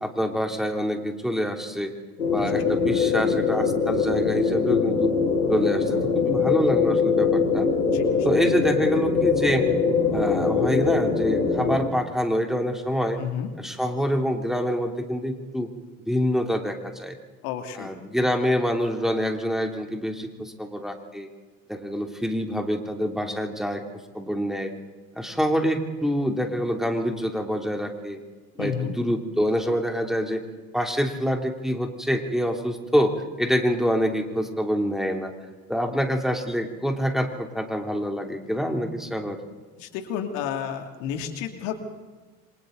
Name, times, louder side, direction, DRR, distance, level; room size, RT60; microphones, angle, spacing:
voice 1, 0.0-1.9 2.3-5.1 5.5-7.7 8.2-9.6 10.1-13.2 13.6-15.7 16.1-17.1 17.8-21.3 21.7-23.8 24.1-24.7 25.1-28.2 28.5-30.4 30.7-33.1 33.4-35.3 35.7-39.4, equal, ahead, 3 dB, 3.1 m, -26 dB
sound 1, 2.2-11.8, left 5 dB, 90° left, 4.7 m, -22 dB
voice 2, 2.4-2.8 7.9-8.3 13.2-13.5 17.4-17.9 28.6-28.9 39.8-41.8, left 8 dB, 65° left, 5 dB, 2.9 m, -31 dB
28.0 x 25.0 x 4.0 m, 1.3 s
hypercardioid pair, 75°, 42 cm